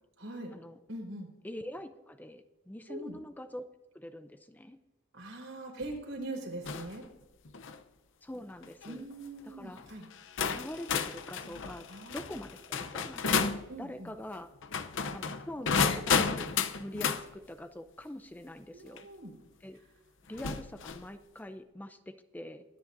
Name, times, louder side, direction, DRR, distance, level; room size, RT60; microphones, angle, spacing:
voice 1, 0.2-0.5 0.9-1.3 2.9-3.2 5.1-7.0 8.8-10.1 11.9-12.4 13.7-14.1 18.7-19.3, right 1 dB, 70° right, 0 dB, 4.2 m, -42 dB
voice 2, 1.4-3.7 3.9-4.8 8.2-9.0 9.4-9.8 10.5-11.9 12.1-14.5 15.1-19.1 19.6-19.8 20.3-22.6, left 1 dB, 10° left, 9 dB, 0.5 m, -44 dB
sound 1, 6.7-7.0 7.5-7.8 8.6-8.9 9.8-9.9 10.4-13.6 14.6-17.2 19.0-19.1 20.3-21.1, left 6 dB, 65° left, 0.7 m, -32 dB
23.5 x 10.0 x 2.6 m, 1.0 s
head